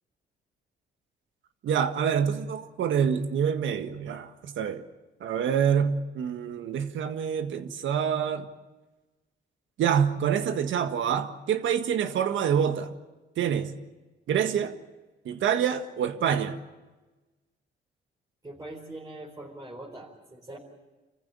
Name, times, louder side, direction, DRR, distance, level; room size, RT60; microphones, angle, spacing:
voice 1, 1.6-4.8 5.2-8.5 9.8-12.9 13.4-13.7 14.3-14.8 15.2-16.6, right 8 dB, 75° right, 1.7 m, -26 dB
voice 2, 18.4-20.6, right 2 dB, 20° right, 4.4 m, -42 dB
27.0 x 15.0 x 8.8 m
cardioid pair, 90°, 20 cm